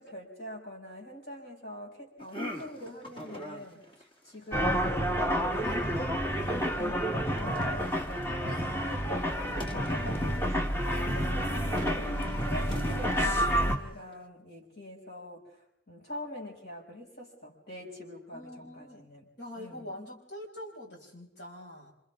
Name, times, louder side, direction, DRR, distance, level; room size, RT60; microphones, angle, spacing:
voice 1, 0.0-6.1 6.8-15.4 15.9-19.3 19.6-19.8, left 1 dB, 60° left, -2 dB, 6.4 m, -44 dB
sound 1, 2.2-14.1, equal, 30° left, 1.9 m, -45 dB
sound 2, 4.5-13.8, equal, 15° left, 1.3 m, -29 dB
voice 2, 18.3-19.0 19.4-21.9, left 1 dB, 75° left, -2 dB, 6.1 m, -44 dB
29.5 x 27.0 x 3.6 m, 0.82 s
head